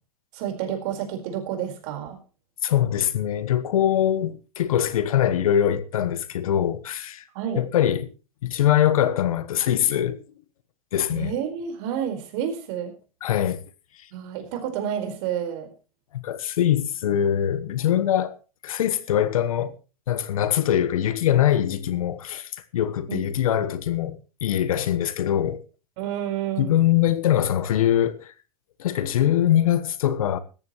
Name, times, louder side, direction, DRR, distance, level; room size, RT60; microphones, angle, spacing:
voice 1, 0.3-2.2 7.3-7.6 11.1-12.9 14.1-15.7 23.1-23.3 26.0-26.8, right 9 dB, 50° right, 4.6 m, -29 dB
voice 2, 2.6-7.2 7.6-8.1 8.4-10.2 10.9-11.3 13.2-13.6 16.1-18.4 18.6-19.8 20.1-25.7 26.6-28.3 28.8-30.4, left 11 dB, 70° left, 1.3 m, -23 dB
17.5 x 14.0 x 3.1 m
hypercardioid pair, 110°, 19 cm